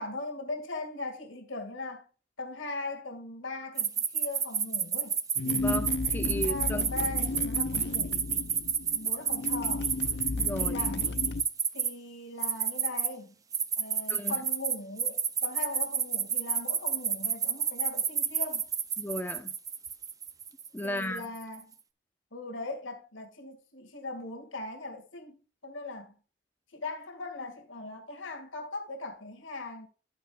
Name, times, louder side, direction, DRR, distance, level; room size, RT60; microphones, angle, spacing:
voice 1, 0.0-2.0 2.4-5.2 6.3-8.2 8.9-10.0 10.6-11.1 11.7-13.3 13.8-18.7 20.8-21.7 22.3-25.4 25.6-26.1 26.7-29.9, left 2 dB, 85° left, 2.0 m, -39 dB
sound 1, 3.8-11.9 12.4-13.1 13.5-21.4, right 7 dB, 20° right, 0.4 m, -29 dB
sound 2, 5.4-11.4, left 3 dB, 55° left, 0.5 m, -33 dB
voice 2, 5.5-6.9 10.3-11.0 14.1-14.4 19.0-19.5 20.7-21.3, left 1 dB, 10° left, 0.7 m, -35 dB
10.5 x 8.5 x 2.3 m
head